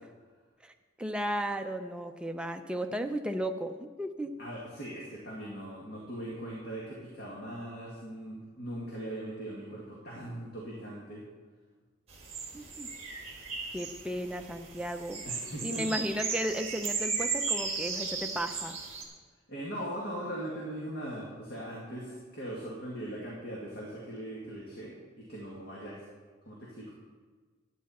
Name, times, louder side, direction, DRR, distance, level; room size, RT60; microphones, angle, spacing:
voice 1, 0.6-4.3 12.5-12.9 13.7-15.2 15.6-18.8, equal, 5° right, 5 dB, 0.5 m, -34 dB
voice 2, 4.4-11.2 15.3-16.0 19.5-26.0 26.5-26.9, right 1 dB, 45° left, -4 dB, 1.9 m, -40 dB
sound 1, 12.1-19.1, right 5 dB, 30° right, 1.5 m, -36 dB
11.5 x 9.3 x 4.2 m, 1.4 s
head